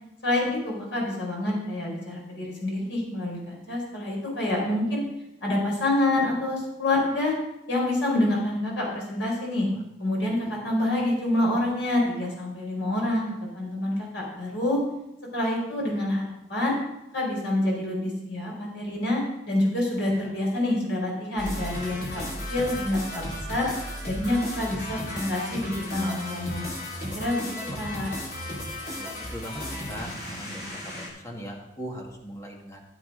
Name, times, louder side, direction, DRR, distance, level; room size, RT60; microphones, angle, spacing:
voice 1, 0.2-5.0 5.4-7.3 7.7-9.7 10.0-14.8 15.3-16.8 17.1-22.2 22.5-23.2 23.5-23.7 24.1-26.7 27.1-27.4 27.8-28.1, left 1 dB, 80° left, -2 dB, 4.6 m, -27 dB
sound 1, 21.4-31.1, left 1 dB, 55° left, 4.1 m, -35 dB
voice 2, 27.4-27.8 28.9-29.6 29.9-32.8, equal, 15° left, 0 dB, 1.8 m, -40 dB
14.5 x 8.7 x 3.9 m, 0.89 s
head